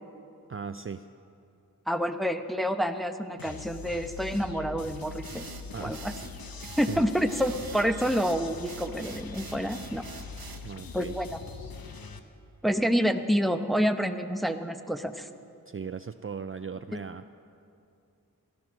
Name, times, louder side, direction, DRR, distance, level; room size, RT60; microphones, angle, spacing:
voice 1, 0.5-1.0 5.7-6.1 6.9-7.1 10.6-11.2 15.7-17.3, right 6 dB, 35° right, 9 dB, 0.4 m, -38 dB
voice 2, 1.9-5.5 5.8-6.1 6.8-10.0 10.9-11.3 12.6-15.3, equal, ahead, 7 dB, 0.9 m, -28 dB
sound 1, 3.4-12.2, left 5 dB, 75° left, 1.0 m, -42 dB
sound 2, 5.2-10.7, right 6 dB, 75° right, 1.0 m, -45 dB
16.5 x 13.0 x 6.3 m, 2.6 s
wide cardioid pair, 50°, 36 cm